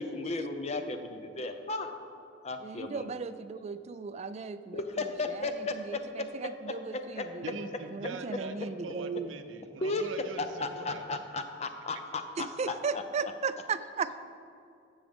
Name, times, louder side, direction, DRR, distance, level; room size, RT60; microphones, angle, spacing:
voice 1, 0.0-1.9 2.4-3.1 4.7-6.2 6.9-7.2 9.8-10.1 10.6-13.0, left 3 dB, 35° left, 7 dB, 0.5 m, -35 dB
voice 2, 2.6-7.5 7.9-9.3 12.4-14.2, right 5 dB, 35° right, 12 dB, 0.3 m, -36 dB
voice 3, 7.4-11.1, right 3 dB, 90° right, 9 dB, 0.6 m, -42 dB
14.5 x 6.2 x 3.6 m, 2.5 s
head